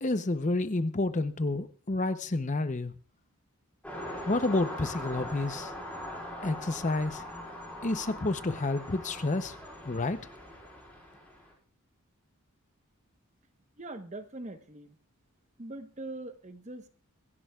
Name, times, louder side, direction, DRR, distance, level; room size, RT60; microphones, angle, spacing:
voice 1, 0.0-2.9 4.3-5.7 6.4-7.2 7.8-9.6 9.8-10.2, left 2 dB, 35° left, 11 dB, 0.7 m, -29 dB
sound 1, 3.8-11.5, left 1 dB, 5° left, 6.2 m, -41 dB
voice 2, 13.8-15.0 15.6-16.9, right 2 dB, 30° right, 8 dB, 1.0 m, -42 dB
25.5 x 11.0 x 2.4 m, 0.41 s
head